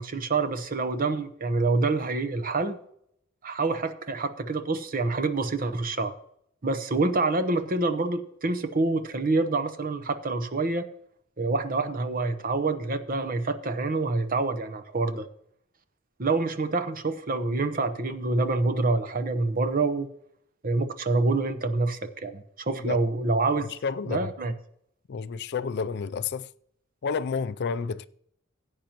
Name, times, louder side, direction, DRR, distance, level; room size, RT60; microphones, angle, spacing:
voice 1, 0.0-2.8 3.4-6.1 6.6-10.9 11.4-15.2 16.2-20.1 20.6-23.7 24.0-24.5, right 3 dB, 40° right, 0.9 m, -27 dB
voice 2, 23.8-24.3 25.1-26.5 27.0-28.0, left 5 dB, 50° left, 0.4 m, -30 dB
17.0 x 8.8 x 3.0 m
head